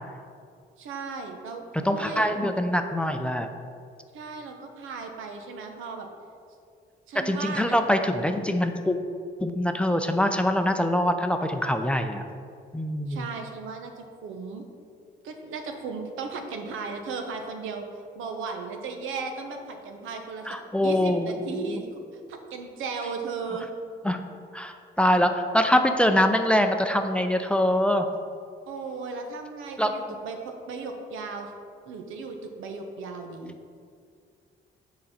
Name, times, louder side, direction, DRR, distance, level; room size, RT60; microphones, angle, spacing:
voice 1, 0.8-1.7 1.9-2.4 4.1-6.1 7.1-7.9 13.1-14.6 15.2-17.8 18.1-20.6 20.8-21.8 22.1-23.7 28.7-31.5 31.8-33.6, right 4 dB, 85° right, 4 dB, 0.9 m, -36 dB
voice 2, 1.8-3.5 7.1-9.0 9.4-12.2 12.7-13.3 20.5-21.8 24.0-24.2 24.5-28.1 29.8-29.9, left 1 dB, 5° left, 6 dB, 0.5 m, -24 dB
7.7 x 4.1 x 5.7 m, 2.3 s
cardioid pair, 90°, 20 cm